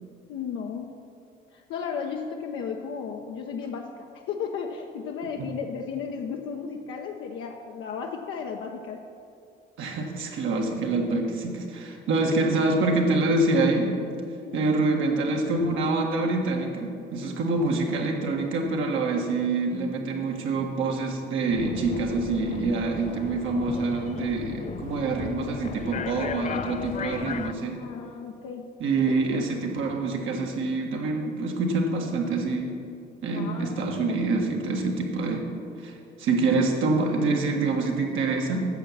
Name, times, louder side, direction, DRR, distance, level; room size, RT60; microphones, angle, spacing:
voice 1, 0.3-0.9 1.5-9.0 14.4-14.6 27.6-28.7 29.1-29.4 33.3-34.2, left 6 dB, 85° left, 1 dB, 0.7 m, -34 dB
voice 2, 9.8-13.9 14.5-27.8 28.8-32.7 33.2-35.4 35.8-38.6, right 3 dB, 85° right, 1 dB, 1.6 m, -26 dB
sound 1, 21.5-27.5, left 7 dB, 40° left, 0.4 m, -36 dB
8.9 x 7.1 x 7.3 m, 2.5 s
cardioid pair, 90°, 20 cm